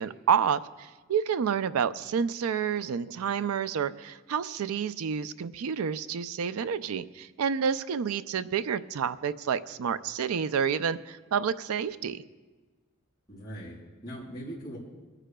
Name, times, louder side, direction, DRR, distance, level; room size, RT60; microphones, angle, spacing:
voice 1, 0.0-12.2, right 7 dB, 85° right, 14 dB, 0.4 m, -29 dB
voice 2, 13.3-14.8, equal, 20° left, -8 dB, 4.5 m, -41 dB
24.0 x 9.9 x 2.3 m, 1.3 s
head